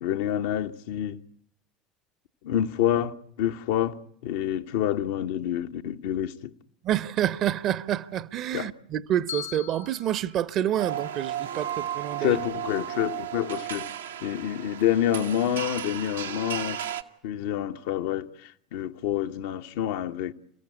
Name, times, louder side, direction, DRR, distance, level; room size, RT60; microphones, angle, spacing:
voice 1, 0.0-1.2 2.4-6.5 8.5-8.7 12.2-13.9 14.2-16.8 17.2-20.3, left 11 dB, 60° left, 0.9 m, -28 dB
voice 2, 6.8-12.4, right 11 dB, 45° right, 0.9 m, -28 dB
Bell, 9.3-11.5, left 11 dB, 80° left, 1.6 m, -41 dB
sound 1, 10.8-17.0, right 10 dB, 75° right, 1.0 m, -34 dB
28.5 x 15.5 x 9.8 m
figure-of-eight pair, 65°, 0 cm